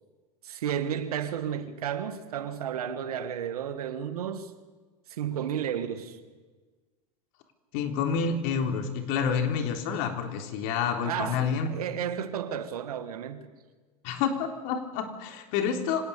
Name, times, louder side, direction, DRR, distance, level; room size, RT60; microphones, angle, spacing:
voice 1, 0.4-4.5 5.1-6.2 11.0-13.5, right 9 dB, 85° right, 2.0 m, -32 dB
voice 2, 7.7-11.7 14.0-16.1, left 6 dB, 60° left, 3.3 m, -28 dB
25.0 x 18.0 x 7.0 m
hypercardioid pair, 105°, 19 cm